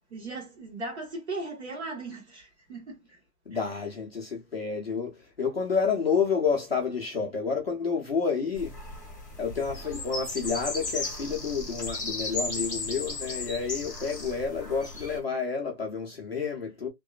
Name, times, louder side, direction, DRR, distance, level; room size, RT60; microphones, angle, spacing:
voice 1, 0.1-3.2 3.5-3.7, right 2 dB, 40° right, 1.2 m, -38 dB
voice 2, 3.5-8.8 9.4-16.9, left 5 dB, 40° left, 0.5 m, -29 dB
sound 1, 8.5-15.2, left 2 dB, 10° right, 0.7 m, -35 dB
2.9 x 2.0 x 2.3 m
hypercardioid pair, 175°, 50 cm